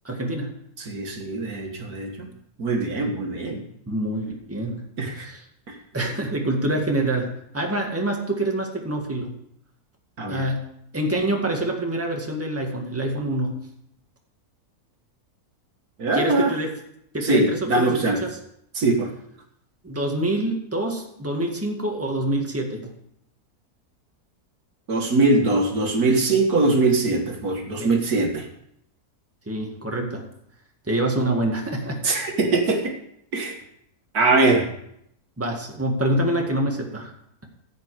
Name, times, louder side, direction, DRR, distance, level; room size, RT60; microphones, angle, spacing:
voice 1, 0.0-0.5 3.9-4.8 5.1-5.4 5.9-9.3 10.3-10.6 10.9-13.6 16.1-16.7 17.1-18.4 19.8-22.9 27.8-28.0 29.5-30.2 30.9-32.0 35.4-37.1, right 1 dB, 10° right, 1 dB, 1.9 m, -26 dB
voice 2, 0.8-2.3 2.6-3.6 5.0-5.3 5.7-5.8 10.2-10.4 16.0-16.5 17.2-18.2 18.8-19.1 24.9-28.5 32.0-32.9 33.3-33.6 34.1-34.7, right 3 dB, 75° right, 3 dB, 2.0 m, -22 dB
15.0 x 8.3 x 4.9 m, 0.74 s
omnidirectional pair, 1.6 m